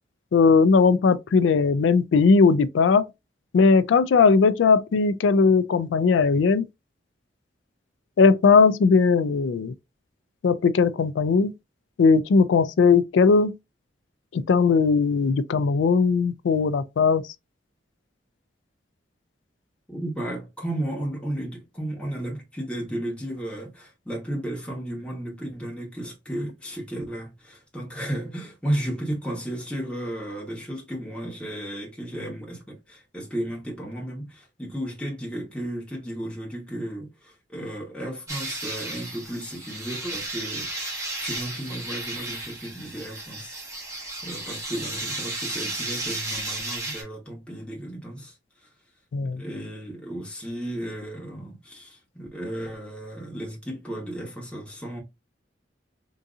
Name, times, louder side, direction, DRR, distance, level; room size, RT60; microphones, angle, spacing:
voice 1, 0.3-3.0 3.5-6.6 8.2-9.7 10.4-11.5 12.0-13.6 14.3-17.2 49.1-49.4, left 4 dB, 85° left, 0.3 m, -19 dB
voice 2, 19.9-40.9 41.2-43.6 43.9-48.4 48.6-48.7 49.3-55.0, right 1 dB, 5° left, 1.1 m, -34 dB
sound 1, 38.3-47.0, right 2 dB, 15° right, 1.0 m, -33 dB
3.7 x 2.7 x 2.4 m
head